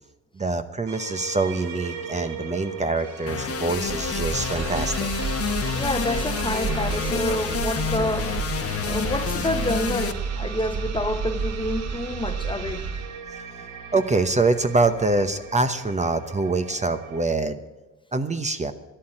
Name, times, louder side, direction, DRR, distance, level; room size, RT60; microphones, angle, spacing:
voice 1, 0.4-5.1 13.9-17.6 18.1-18.7, right 3 dB, 25° right, 0.9 m, -24 dB
sound 1, 0.9-17.3, right 5 dB, 80° right, 2.2 m, -39 dB
sound 2, 3.3-10.1, left 7 dB, 50° left, 1.2 m, -29 dB
sound 3, 3.5-13.2, right 6 dB, 60° right, 1.2 m, -31 dB
voice 2, 5.7-8.4 8.8-12.9, left 1 dB, 15° left, 1.1 m, -28 dB
13.0 x 9.7 x 8.8 m
cardioid pair, 90°, 30 cm